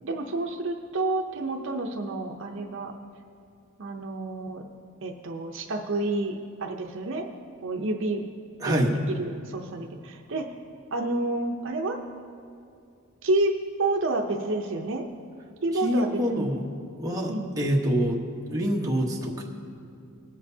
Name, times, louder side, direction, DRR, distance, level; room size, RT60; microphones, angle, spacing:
voice 1, 0.0-2.9 3.8-4.6 5.0-7.3 7.6-8.2 8.7-10.5 10.9-12.0 13.2-13.5 13.8-15.1 15.6-16.6 17.3-17.5, right 2 dB, 60° right, 3 dB, 0.6 m, -29 dB
voice 2, 8.6-8.9 15.8-16.6 17.0-18.2 18.5-19.4, equal, 15° right, -2 dB, 1.1 m, -26 dB
19.5 x 7.5 x 2.7 m, 2.4 s
head